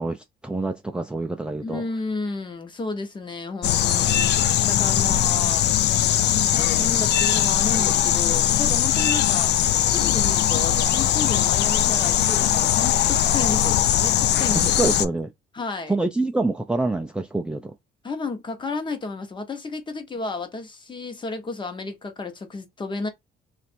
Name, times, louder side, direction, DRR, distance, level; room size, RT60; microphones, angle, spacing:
voice 1, 0.0-1.8 4.8-5.4 14.5-15.3 15.9-17.7, right 2 dB, 5° right, 0.4 m, -27 dB
voice 2, 1.6-4.3 4.6-6.0 6.3-9.5 9.9-14.8 15.5-15.9 18.0-23.1, left 3 dB, 25° left, 1.0 m, -32 dB
sound 1, 3.6-15.1, left 11 dB, 70° left, 0.4 m, -20 dB
3.2 x 2.5 x 4.3 m
cardioid pair, 110°, 18 cm